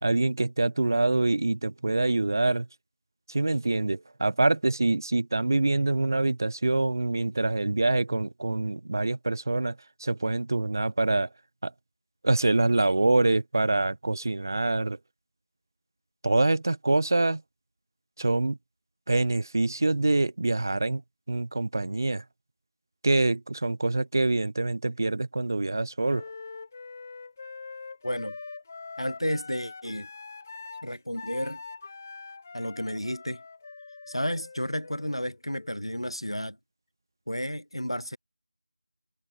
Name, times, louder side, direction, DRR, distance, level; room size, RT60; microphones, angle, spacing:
voice 1, 0.0-2.7 3.3-9.8 10.0-11.3 11.6-11.7 12.2-15.0 16.2-17.4 18.2-18.6 19.1-21.0 21.3-22.2 23.0-26.2, right 2 dB, 40° right, 0.4 m, -25 dB
Wind instrument woodwind instrument, 26.1-35.9, left 4 dB, 25° left, 2.6 m, -43 dB
voice 2, 28.0-28.4 29.0-30.1 30.8-31.6 32.5-33.4 34.1-36.6 37.3-38.2, equal, 85° left, 3.6 m, -32 dB
figure-of-eight pair, 165°, 3 cm